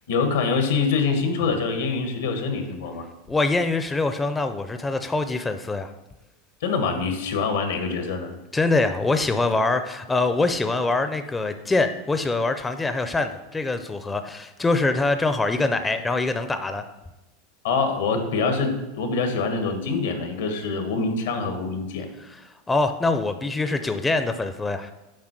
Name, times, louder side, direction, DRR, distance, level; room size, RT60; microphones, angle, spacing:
voice 1, 0.1-3.0 6.6-8.3 17.6-22.1, left 4 dB, 85° left, 5 dB, 1.5 m, -25 dB
voice 2, 3.3-5.9 8.5-16.8 22.2-24.9, left 3 dB, 10° left, 8 dB, 0.5 m, -24 dB
7.5 x 4.7 x 6.0 m, 1.0 s
supercardioid pair, 125°, 0 cm